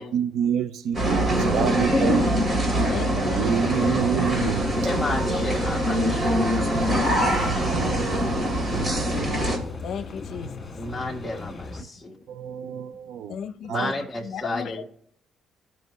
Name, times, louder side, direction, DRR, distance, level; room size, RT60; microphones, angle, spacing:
voice 1, 0.0-2.5 3.3-4.9 7.2-8.6 12.3-13.4 13.7-13.9, right 9 dB, 80° right, 0.4 m, -28 dB
sound 1, 0.9-9.6, equal, 40° right, 2.6 m, -23 dB
voice 2, 1.5-2.2 2.9-3.7 6.8-7.5 9.8-10.5 13.3-13.9 14.3-14.8, left 8 dB, 70° left, 0.6 m, -35 dB
sound 2, 3.5-11.8, left 4 dB, 35° left, 1.7 m, -37 dB
voice 3, 4.8-7.3 10.7-12.2 12.6-12.8 13.7-14.8, left 2 dB, 5° left, 1.4 m, -32 dB
16.5 x 5.9 x 3.1 m
cardioid pair, 90°, 0 cm